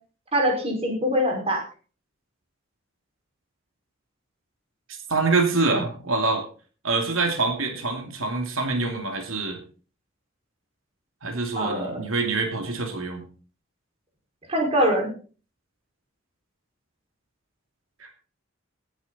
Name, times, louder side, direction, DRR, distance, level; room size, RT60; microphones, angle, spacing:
voice 1, 0.3-1.6 11.6-12.0 14.5-15.1, equal, 30° right, 1 dB, 5.4 m, -23 dB
voice 2, 5.1-6.4 6.8-9.6 11.2-13.2 18.0-18.1, right 3 dB, 90° right, 3 dB, 2.7 m, -25 dB
17.5 x 10.0 x 4.2 m, 0.39 s
head